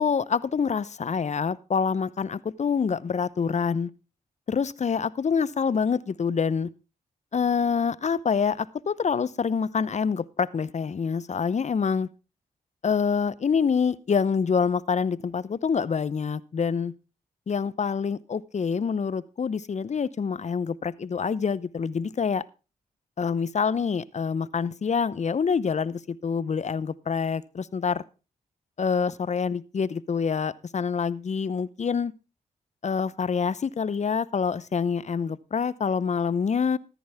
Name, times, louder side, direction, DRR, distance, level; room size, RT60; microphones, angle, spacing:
voice 1, 0.0-3.9 4.5-6.7 7.3-12.1 12.8-16.9 17.5-22.4 23.2-28.0 28.8-32.1 32.8-36.8, left 6 dB, 45° left, 20 dB, 0.8 m, -26 dB
13.5 x 10.5 x 3.5 m, 0.31 s
supercardioid pair, 45°, 16 cm